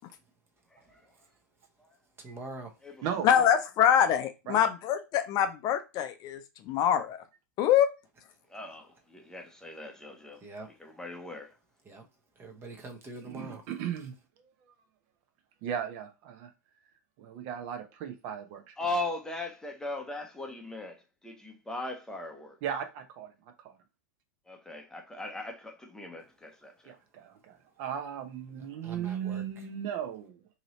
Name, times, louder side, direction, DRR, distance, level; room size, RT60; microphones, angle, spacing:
voice 1, 0.7-1.1 1.8-2.0 2.8-3.5 8.5-10.4 10.8-11.6 18.8-22.6 24.5-26.9, left 2 dB, 5° left, 0.7 m, -39 dB
voice 2, 2.2-2.8 10.4-10.7 11.8-12.1 12.4-13.6 28.8-29.4, right 2 dB, 25° right, 0.9 m, -44 dB
voice 3, 3.2-7.2 7.6-7.9, left 9 dB, 40° left, 0.4 m, -25 dB
voice 4, 13.2-14.7 15.6-16.5 17.2-18.7 22.6-23.3 23.6-23.8 26.8-30.5, right 9 dB, 50° right, 0.7 m, -37 dB
2.8 x 2.6 x 3.1 m
hypercardioid pair, 105°, 10 cm